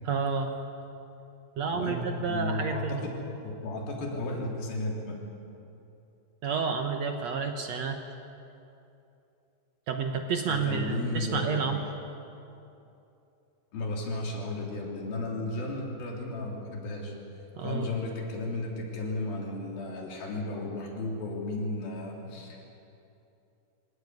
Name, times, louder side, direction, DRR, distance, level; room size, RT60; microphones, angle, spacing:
voice 1, 0.0-0.5 1.6-3.0 6.4-8.0 9.9-11.8 17.6-17.9, right 5 dB, 65° right, 4 dB, 1.8 m, -30 dB
voice 2, 1.7-3.2 3.4-5.2 10.5-11.7 13.7-17.1 17.6-22.6, left 2 dB, 70° left, -1 dB, 5.1 m, -34 dB
25.5 x 17.5 x 9.6 m, 2.8 s
omnidirectional pair, 4.4 m